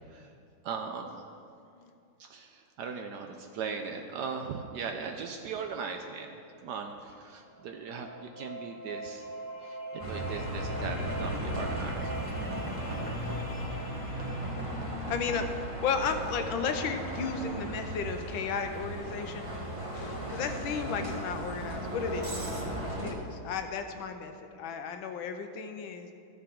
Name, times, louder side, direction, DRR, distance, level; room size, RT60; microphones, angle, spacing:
voice 1, 0.6-1.2 2.2-9.3 9.6-12.1 20.3-20.4, right 5 dB, 70° right, 4 dB, 1.0 m, -39 dB
sound 1, 7.5-15.3, right 1 dB, 25° left, 1.1 m, -43 dB
Bus, 10.0-23.1, right 1 dB, 25° right, 0.8 m, -36 dB
voice 2, 15.1-19.5 19.9-22.4 23.0-26.1, left 5 dB, 80° left, 7 dB, 1.4 m, -34 dB
14.0 x 6.7 x 3.7 m, 2.5 s
omnidirectional pair, 2.2 m